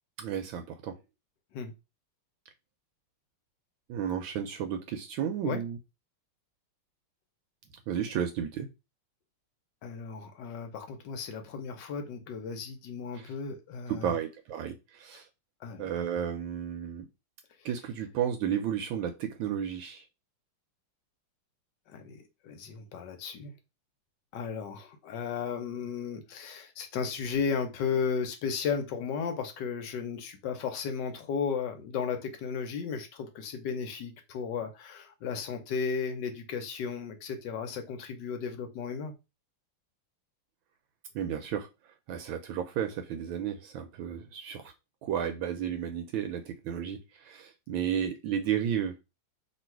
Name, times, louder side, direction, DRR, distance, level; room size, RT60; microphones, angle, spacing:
voice 1, 0.2-1.0 3.9-5.8 7.9-8.7 13.1-13.3 13.9-15.3 15.8-17.1 17.6-20.0 41.1-41.7 42.1-44.7 45.0-49.0, right 9 dB, 75° right, 1.3 m, -33 dB
voice 2, 9.8-14.1 15.6-15.9 17.6-17.7 21.9-23.5 24.3-39.1, left 6 dB, 70° left, 1.2 m, -34 dB
3.0 x 2.8 x 4.4 m
omnidirectional pair, 2.3 m